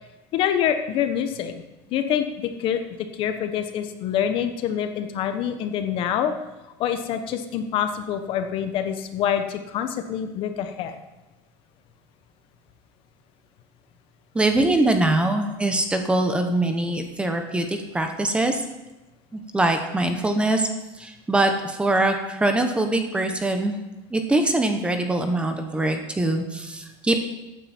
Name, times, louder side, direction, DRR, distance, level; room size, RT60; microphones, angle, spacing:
voice 1, 0.3-1.6 1.9-2.8 3.1-6.3 6.8-11.0, left 9 dB, 45° left, 8 dB, 1.0 m, -26 dB
voice 2, 14.3-18.6 19.3-20.7 21.0-23.7 24.1-27.2, right 2 dB, 10° right, 5 dB, 1.0 m, -23 dB
14.5 x 9.2 x 4.4 m, 1.0 s
cardioid pair, 160°, 12 cm